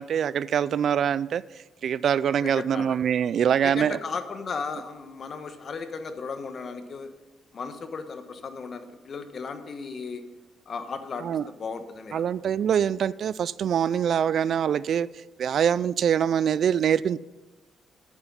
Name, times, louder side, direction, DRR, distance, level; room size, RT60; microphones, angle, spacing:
voice 1, 0.0-1.4 1.8-4.0 11.2-11.5 12.1-15.1 15.4-17.2, right 8 dB, 60° right, 0.3 m, -24 dB
voice 2, 2.4-3.0 3.6-7.1 7.5-10.2 10.7-11.3 11.6-12.3, left 5 dB, 45° left, 1.2 m, -35 dB
8.8 x 8.7 x 5.5 m
cardioid pair, 90°, 0 cm